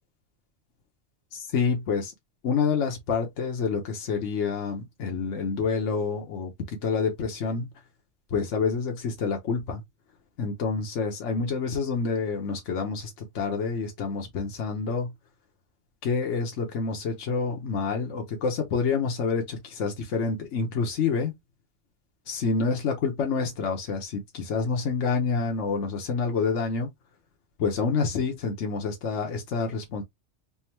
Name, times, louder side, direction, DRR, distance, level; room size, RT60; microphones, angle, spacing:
voice 1, 1.3-2.1 2.4-7.7 8.3-9.8 10.4-15.1 16.0-21.3 22.3-26.9 27.6-30.0, left 5 dB, 75° left, 1.2 m, -28 dB
3.5 x 2.3 x 4.4 m
omnidirectional pair, 1.3 m